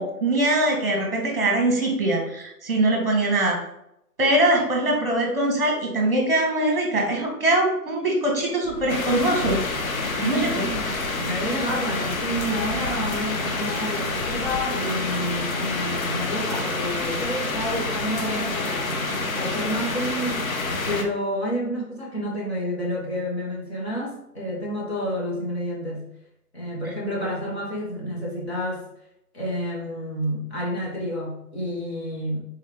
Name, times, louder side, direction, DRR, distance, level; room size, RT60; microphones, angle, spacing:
voice 1, 0.0-3.6 4.2-9.6 10.2-10.6 26.9-27.0, right 1 dB, 35° right, 1 dB, 1.1 m, -22 dB
sound 1, 8.6-14.7, left 2 dB, 85° left, 1.0 m, -39 dB
sound 2, 8.9-21.0, left 3 dB, 60° left, 0.7 m, -28 dB
voice 2, 10.1-19.0 19.3-26.0 26.5-28.8 29.3-32.4, equal, 40° left, -5 dB, 1.4 m, -29 dB
3.7 x 3.2 x 3.3 m, 0.81 s
figure-of-eight pair, 170°, 47 cm